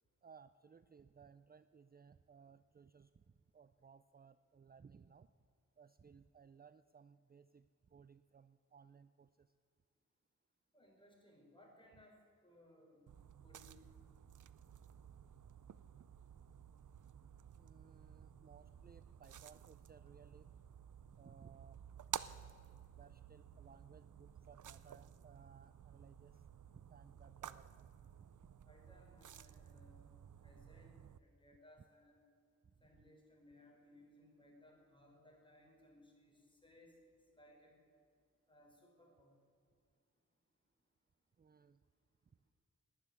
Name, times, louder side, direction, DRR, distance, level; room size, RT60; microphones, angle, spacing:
voice 1, 0.2-5.3 5.8-9.5 17.6-20.5 21.1-21.9 22.9-26.4 26.7-27.9 28.2-28.3 32.6-33.0 41.4-41.8, right 6 dB, 30° right, 13 dB, 0.4 m, -62 dB
voice 2, 10.7-12.2 12.4-13.2 13.4-13.8 28.7-30.1 30.4-32.2 32.8-37.8 38.5-39.4, left 1 dB, 15° left, -1 dB, 4.2 m, -65 dB
sound 1, 13.1-31.2, right 9 dB, 80° right, 0.5 m, -53 dB
12.5 x 9.9 x 9.8 m, 2.2 s
wide cardioid pair, 85°, 30 cm